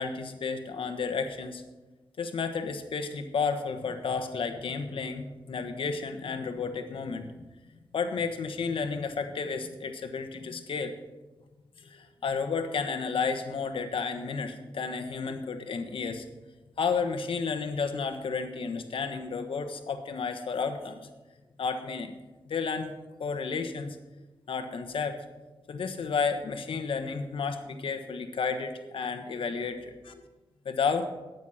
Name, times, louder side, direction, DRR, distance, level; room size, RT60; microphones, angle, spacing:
voice 1, 0.0-1.6 2.2-7.5 7.9-10.9 11.8-16.2 16.8-21.0 21.6-22.1 22.4-22.9 23.2-24.0 24.5-25.2 25.7-30.2 30.6-31.1, left 5 dB, 90° left, 7 dB, 1.3 m, -32 dB
13.0 x 9.4 x 5.7 m, 1.1 s
wide cardioid pair, 105°, 9 cm